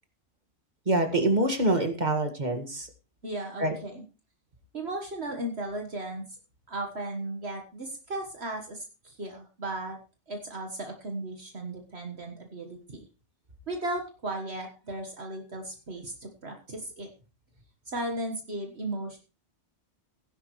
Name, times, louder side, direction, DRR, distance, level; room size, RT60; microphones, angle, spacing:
voice 1, 0.9-2.9 3.6-3.7, right 2 dB, 35° right, 5 dB, 2.1 m, -25 dB
voice 2, 3.2-4.0 4.7-6.3 6.7-10.0 10.3-13.0 13.7-17.1 17.9-19.2, right 1 dB, 60° right, 3 dB, 1.8 m, -36 dB
16.5 x 10.5 x 3.2 m, 0.31 s
omnidirectional pair, 1.2 m